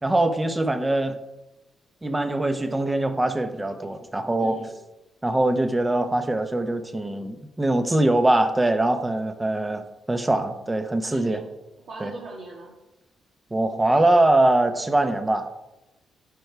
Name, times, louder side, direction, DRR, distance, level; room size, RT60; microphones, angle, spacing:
voice 1, 0.0-1.2 2.0-4.6 5.2-9.8 10.1-11.4 12.0-12.1 13.5-15.5, right 2 dB, 15° right, 8 dB, 0.8 m, -22 dB
voice 2, 4.4-4.8 11.0-11.5 11.8-12.7, right 3 dB, 65° right, -3 dB, 1.6 m, -39 dB
9.6 x 5.4 x 4.6 m, 0.98 s
cardioid pair, 100°, 0 cm